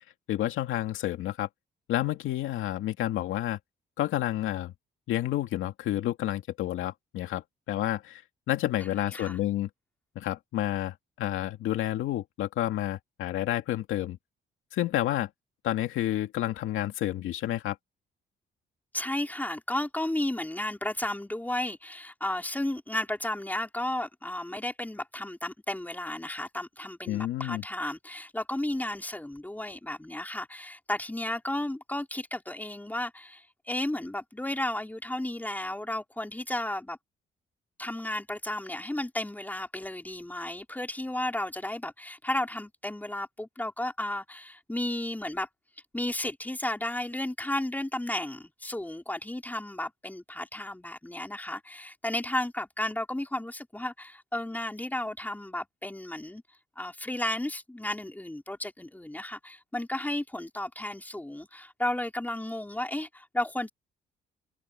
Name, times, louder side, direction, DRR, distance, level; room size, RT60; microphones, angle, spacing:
voice 1, 0.3-1.5 1.9-3.6 4.0-4.7 5.1-8.2 8.5-9.7 10.2-14.2 14.7-15.3 15.6-17.8 27.1-27.6, left 13 dB, 85° left, 2.4 m, -30 dB
voice 2, 8.9-9.4 18.9-37.0 37.8-45.5 45.9-56.4 56.8-63.7, left 1 dB, 10° left, 3.8 m, -33 dB
cardioid pair, 90°, 20 cm